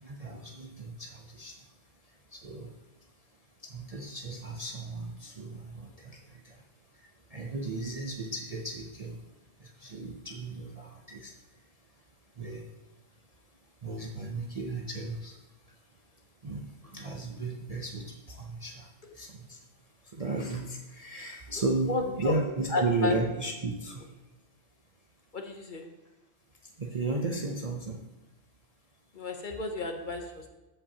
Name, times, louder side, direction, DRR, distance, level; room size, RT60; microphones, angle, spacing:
voice 1, 0.0-1.5 2.3-2.7 3.7-6.2 6.4-6.5 7.3-9.2 9.6-11.3 12.4-12.6 13.8-15.4 16.4-18.9 19.2-19.6 20.1-24.0 26.8-28.0, right 3 dB, 45° right, 1 dB, 0.5 m, -34 dB
voice 2, 21.9-22.4 22.7-23.2 25.3-25.9 29.1-30.5, left 3 dB, 45° left, 3 dB, 0.8 m, -32 dB
14.0 x 5.3 x 2.8 m, 1.1 s
omnidirectional pair, 1.3 m